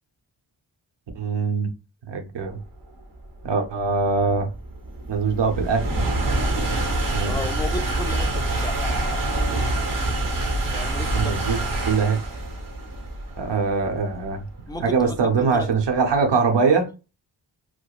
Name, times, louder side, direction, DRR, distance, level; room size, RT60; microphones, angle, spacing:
voice 1, 1.1-1.7 2.0-2.6 3.4-4.5 5.1-5.9 7.1-7.4 11.1-12.2 13.4-14.4 14.8-16.9, right 5 dB, 65° right, 0.9 m, -22 dB
sound 1, 2.8-16.1, right 2 dB, 45° right, 1.1 m, -26 dB
voice 2, 7.2-9.1 10.7-11.7 14.7-15.7, left 2 dB, 10° left, 0.4 m, -34 dB
4.6 x 2.0 x 2.4 m
wide cardioid pair, 130°, 45 cm